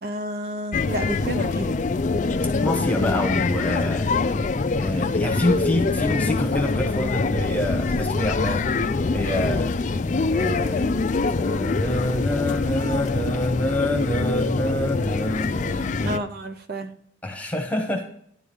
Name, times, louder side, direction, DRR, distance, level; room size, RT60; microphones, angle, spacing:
voice 1, 0.0-1.8 16.0-16.9, right 1 dB, 50° right, 9 dB, 0.6 m, -30 dB
sound 1, 0.7-16.2, left 3 dB, 40° left, 0.4 m, -24 dB
voice 2, 2.6-4.1 4.8-8.7 9.1-9.7 10.3-10.9 11.3-16.2 17.2-18.0, left 1 dB, 5° left, 2 dB, 1.2 m, -26 dB
11.0 x 4.9 x 7.0 m, 0.67 s
head